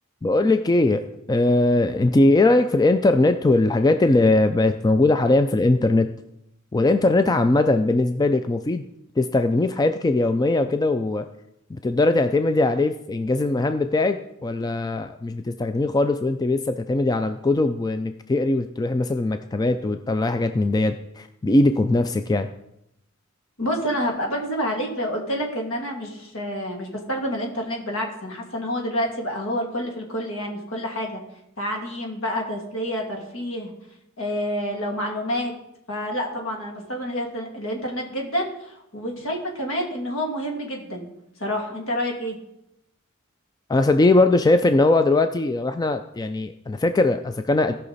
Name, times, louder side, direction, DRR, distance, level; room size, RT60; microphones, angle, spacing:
voice 1, 0.2-1.0 1.3-6.1 6.7-8.8 9.2-11.3 11.7-22.5 43.7-47.7, left 2 dB, 20° left, 8 dB, 0.3 m, -20 dB
voice 2, 23.6-31.2 31.6-33.7 34.2-35.5 35.9-41.1 41.4-42.4, equal, 65° left, 1 dB, 2.4 m, -28 dB
17.0 x 5.8 x 4.1 m, 0.82 s
head